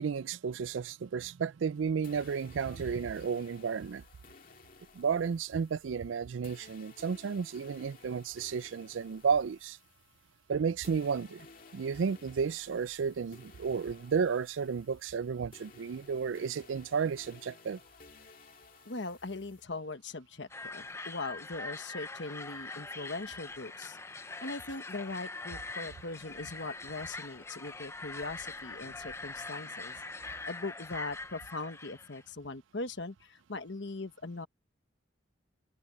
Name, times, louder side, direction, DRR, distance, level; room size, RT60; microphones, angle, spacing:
voice 1, 0.0-4.0 4.9-9.8 10.5-11.5 11.7-17.8 28.9-29.0, right 6 dB, 75° right, 0.4 m, -32 dB
sound 1, 2.0-10.5 10.8-19.6, left 4 dB, 45° left, 2.3 m, -57 dB
voice 2, 18.8-24.0 24.4-34.5, left 3 dB, 65° left, 1.2 m, -40 dB
sound 2, 20.5-32.2, left 3 dB, 15° left, 0.6 m, -43 dB
open air
head